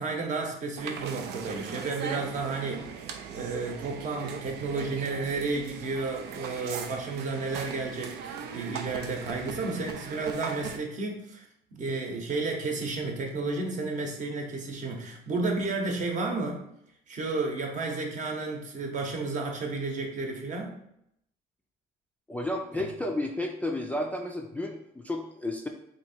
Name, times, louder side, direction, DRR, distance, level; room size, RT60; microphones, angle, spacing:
voice 1, 0.0-11.5 11.7-16.6 17.1-20.7, right 3 dB, 50° right, 1 dB, 0.9 m, -32 dB
sound 1, 0.8-10.8, right 7 dB, 80° right, 0.5 m, -39 dB
voice 2, 22.3-25.7, left 1 dB, 10° left, 1 dB, 0.3 m, -32 dB
3.0 x 2.7 x 4.2 m, 0.76 s
cardioid pair, 110°, 17 cm